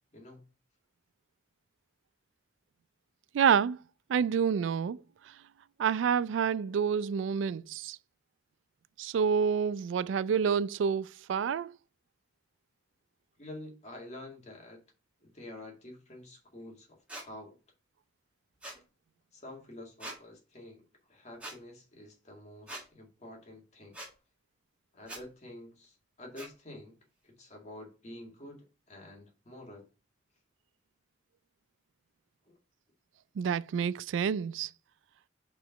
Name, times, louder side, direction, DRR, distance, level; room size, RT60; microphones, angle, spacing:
voice 1, 3.3-3.8 4.1-5.0 5.8-8.0 9.0-11.7 33.4-34.7, right 7 dB, 85° right, 0.3 m, -28 dB
voice 2, 13.4-14.8 15.2-17.6 19.3-24.0 24.9-27.0 27.2-29.9 32.5-32.6, left 1 dB, 35° left, 2.1 m, -48 dB
sound 1, 17.1-17.3 18.6-18.8 20.0-20.2 21.4-21.6 22.7-22.8 23.9-24.1 25.0-25.2 26.4-26.5, right 1 dB, 5° right, 1.8 m, -42 dB
5.0 x 4.8 x 5.6 m
head